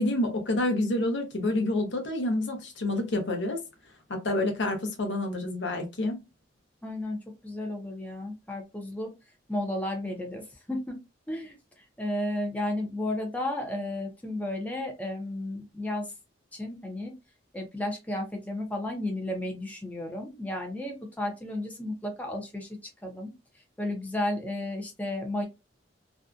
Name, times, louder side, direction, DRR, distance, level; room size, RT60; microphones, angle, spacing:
voice 1, 0.0-3.6 4.1-6.2, left 1 dB, 80° left, 0.8 m, -28 dB
voice 2, 6.8-9.1 9.5-11.0 11.3-16.1 16.5-17.1 17.5-25.4, left 1 dB, 10° left, 0.6 m, -33 dB
2.6 x 2.3 x 2.3 m
head